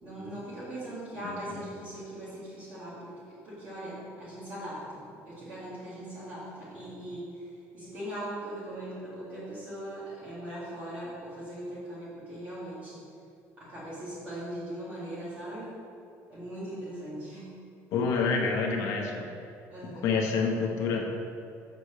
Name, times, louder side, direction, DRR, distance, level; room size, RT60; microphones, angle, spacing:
voice 1, 0.0-3.2 3.4-13.0 13.6-15.7 16.3-17.5 19.7-20.2, right 1 dB, 25° right, -12 dB, 2.1 m, -40 dB
voice 2, 1.2-1.6 17.9-19.3 20.0-21.0, left 4 dB, 65° left, 0 dB, 1.2 m, -28 dB
6.6 x 5.0 x 6.8 m, 2.6 s
cardioid pair, 180°, 6 cm